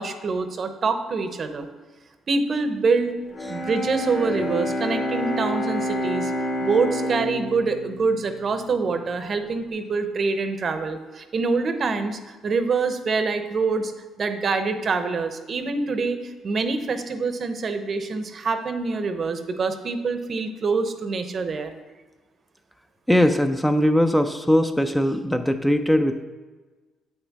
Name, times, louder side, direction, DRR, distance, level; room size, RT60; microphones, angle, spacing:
voice 1, 0.0-1.7 2.3-3.1 3.5-6.3 6.6-13.9 14.2-21.7, right 4 dB, 50° right, 8 dB, 0.8 m, -25 dB
Bowed string instrument, 3.3-9.3, equal, 60° left, 2.0 m, -28 dB
voice 2, 23.1-26.2, equal, 5° left, 7 dB, 0.5 m, -20 dB
7.7 x 5.9 x 4.1 m, 1.3 s
supercardioid pair, 70°, 0 cm